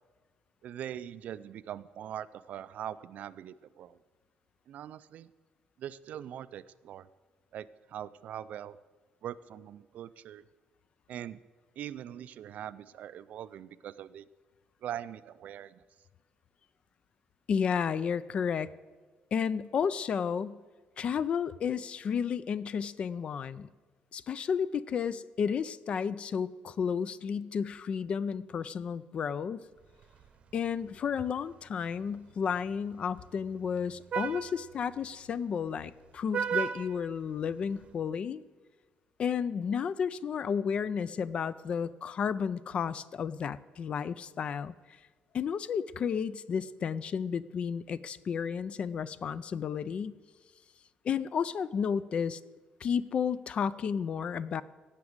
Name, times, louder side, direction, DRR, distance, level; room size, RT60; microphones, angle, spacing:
voice 1, 0.6-4.0 4.7-5.3 5.8-7.1 7.5-8.8 9.2-10.4 11.1-11.4 11.8-14.3 14.8-15.8, right 10 dB, 55° right, 16 dB, 0.4 m, -42 dB
voice 2, 17.5-18.7 19.3-20.6 21.0-23.7 24.1-29.6 30.5-38.4 39.2-44.7 45.3-50.2 51.0-52.4 52.8-54.6, left 7 dB, 40° left, 17 dB, 0.3 m, -32 dB
Vehicle horn car horn honking, 29.8-37.9, right 7 dB, 40° right, 0.8 m, -40 dB
17.0 x 6.0 x 7.9 m, 1.4 s
cardioid pair, 175°, 3 cm